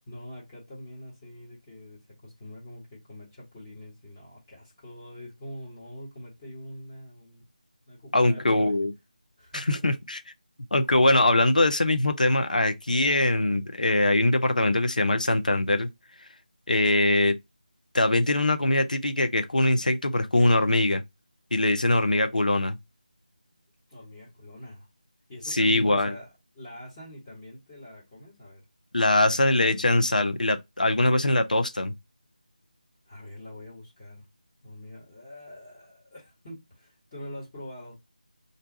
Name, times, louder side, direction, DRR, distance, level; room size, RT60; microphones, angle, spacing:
voice 1, 0.1-7.4 7.9-8.7 9.4-9.9 23.9-24.9 25.3-28.6 33.0-34.3 34.6-38.0, equal, 20° left, 1.1 m, -44 dB
voice 2, 8.1-8.9 9.5-10.2 10.7-15.9 16.7-17.4 17.9-21.0 21.5-22.8 25.5-26.1 28.9-31.9, left 1 dB, 65° left, 0.5 m, -22 dB
2.6 x 2.2 x 3.9 m
figure-of-eight pair, 160°, 5 cm